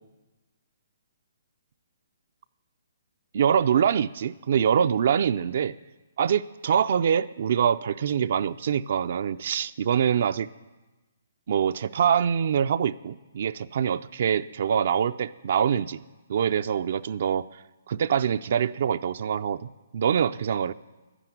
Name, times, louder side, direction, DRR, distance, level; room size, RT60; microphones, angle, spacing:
voice 1, 3.3-5.7 6.2-10.5 11.5-16.0 16.3-17.4 17.9-19.6 19.9-20.7, right 8 dB, 55° right, 11 dB, 0.4 m, -24 dB
11.5 x 9.9 x 9.2 m, 1.2 s
hypercardioid pair, 155°, 0 cm